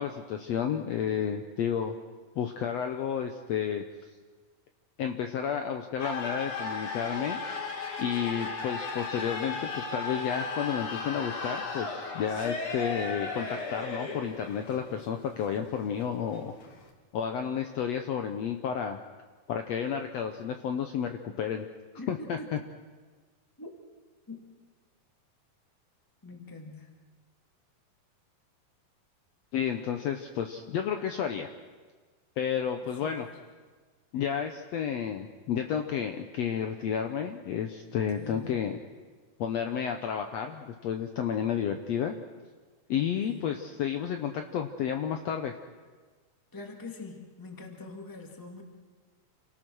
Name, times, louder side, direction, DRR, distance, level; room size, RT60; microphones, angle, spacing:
voice 1, 0.0-1.9 2.4-3.8 5.0-7.4 8.0-16.5 17.1-19.0 19.5-21.7 22.1-22.6 29.5-31.5 32.4-33.3 34.1-38.8 39.4-42.2 42.9-45.5, left 8 dB, 90° left, 6 dB, 1.4 m, -31 dB
sound 1, 6.0-16.9, left 3 dB, 45° left, 2.4 m, -36 dB
voice 2, 22.0-22.5 23.6-23.7 24.3-24.5 26.2-27.0 33.0-33.3 38.2-38.5 43.2-43.5 46.5-48.6, left 2 dB, 10° left, 3 dB, 1.1 m, -44 dB
28.0 x 18.5 x 6.3 m, 1.4 s
omnidirectional pair, 4.2 m